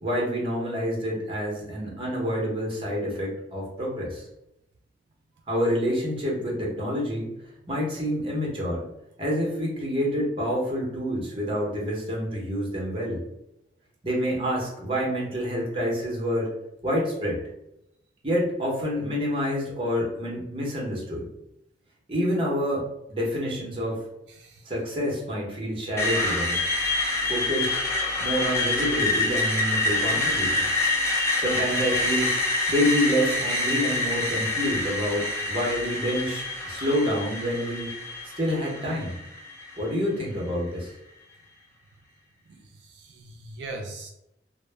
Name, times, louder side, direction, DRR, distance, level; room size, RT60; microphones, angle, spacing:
voice 1, 0.0-4.3 5.5-7.3 7.7-8.8 9.2-13.2 14.0-16.5 16.8-17.4 18.2-21.3 22.1-24.0 24.7-26.6 27.3-27.8 28.2-30.7 31.4-32.3 32.7-37.9 38.4-39.1 39.8-40.9, equal, 30° right, -3 dB, 0.8 m, -27 dB
voice 2, 24.3-24.7 42.5-44.1, right 2 dB, 75° right, 2 dB, 0.3 m, -40 dB
Screech, 26.0-39.9, left 2 dB, 15° left, 0.4 m, -27 dB
2.0 x 2.0 x 3.2 m, 0.83 s
head